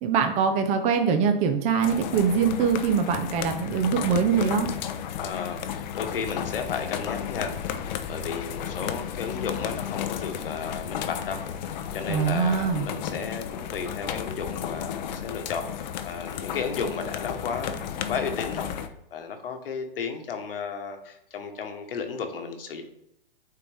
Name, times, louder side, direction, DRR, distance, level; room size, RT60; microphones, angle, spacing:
voice 1, 0.0-4.7 12.1-12.9, right 6 dB, 25° right, 6 dB, 0.7 m, -23 dB
sound 1, 1.8-18.9, left 9 dB, 50° left, 0.7 m, -33 dB
voice 2, 5.2-7.8 8.1-11.4 11.9-18.7 19.1-22.8, left 5 dB, 70° left, 5 dB, 1.4 m, -33 dB
9.0 x 4.0 x 3.5 m, 0.78 s
hypercardioid pair, 130°, 29 cm